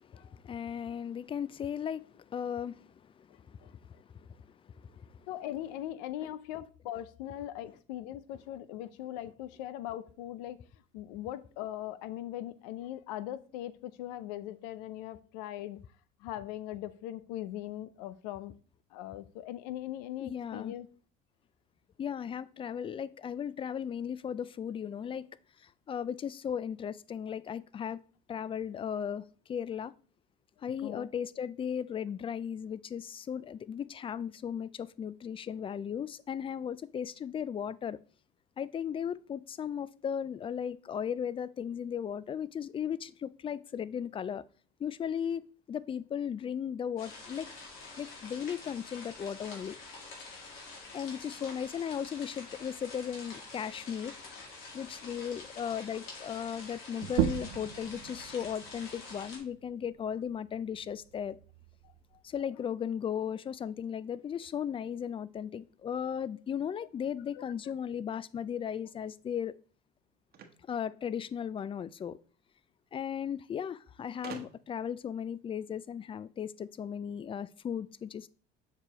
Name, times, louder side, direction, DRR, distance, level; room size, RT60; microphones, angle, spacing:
voice 1, 0.0-5.3 20.2-20.7 22.0-25.3 25.6-28.0 28.3-29.9 30.6-38.0 38.6-44.4 44.8-47.5 48.0-49.8 50.9-54.2 54.7-61.4 62.2-69.5 70.6-72.2 72.9-78.3, left 8 dB, 25° left, 0.3 m, -36 dB
voice 2, 3.3-3.7 5.3-10.6 10.9-15.8 16.2-18.6 18.9-20.9 30.8-31.1 50.3-50.7 50.9-51.0 67.4-67.5, left 13 dB, 90° left, 0.5 m, -40 dB
sound 1, 47.0-59.4, left 3 dB, 70° left, 2.4 m, -47 dB
sound 2, 57.0-62.2, right 13 dB, 80° right, 0.5 m, -37 dB
sound 3, 70.3-71.7 72.8-72.9 73.2-73.3 74.2-74.9, right 6 dB, 50° right, 1.1 m, -48 dB
6.7 x 4.9 x 2.9 m
supercardioid pair, 95°, 21 cm